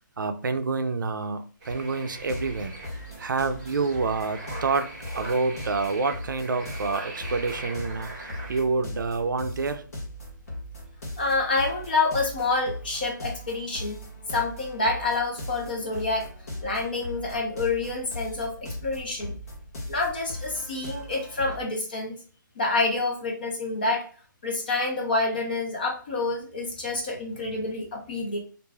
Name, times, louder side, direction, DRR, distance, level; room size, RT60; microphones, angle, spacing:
voice 1, 0.2-2.7 3.2-9.8, right 4 dB, 70° right, 0.4 m, -28 dB
sound 1, 1.6-8.6, right 2 dB, 20° right, 0.8 m, -41 dB
sound 2, 2.2-21.6, left 1 dB, 45° left, 1.0 m, -39 dB
voice 2, 11.2-14.0 14.3-16.3 16.6-19.3 19.9-22.2 22.6-24.0 24.4-28.4, left 3 dB, 25° left, 0.6 m, -27 dB
2.5 x 2.2 x 3.2 m
hypercardioid pair, 175°, 11 cm